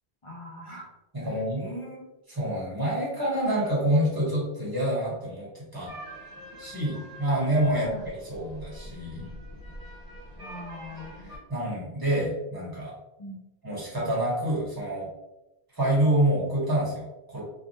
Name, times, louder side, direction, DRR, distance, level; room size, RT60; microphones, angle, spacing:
voice 1, 0.2-0.9 1.2-2.1 6.9-7.0 7.8-8.1 10.4-11.1 13.2-13.4, equal, 40° left, -2 dB, 0.5 m, -41 dB
voice 2, 1.1-1.6 2.3-5.9 6.6-7.9 8.3-9.3 11.5-12.9 13.6-15.1 15.7-17.4, right 1 dB, 20° right, -5 dB, 1.0 m, -27 dB
sound 1, 5.9-11.4, equal, 65° right, 1.3 m, -44 dB
3.2 x 2.2 x 2.6 m, 0.99 s
omnidirectional pair, 1.1 m